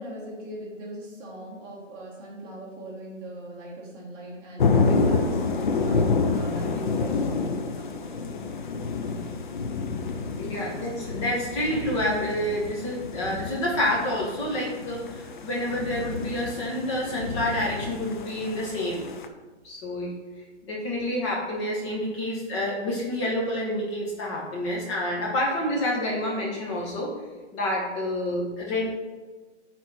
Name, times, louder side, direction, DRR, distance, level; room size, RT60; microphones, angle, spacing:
voice 1, 0.0-8.1, right 1 dB, 20° right, -4 dB, 1.6 m, -39 dB
sound 1, 4.6-19.3, left 4 dB, 40° left, 0.7 m, -29 dB
voice 2, 10.4-19.0 19.6-20.1 20.6-27.1 27.5-28.9, left 1 dB, 25° left, -4 dB, 1.4 m, -28 dB
9.0 x 4.2 x 4.4 m, 1.3 s
hypercardioid pair, 155°, 36 cm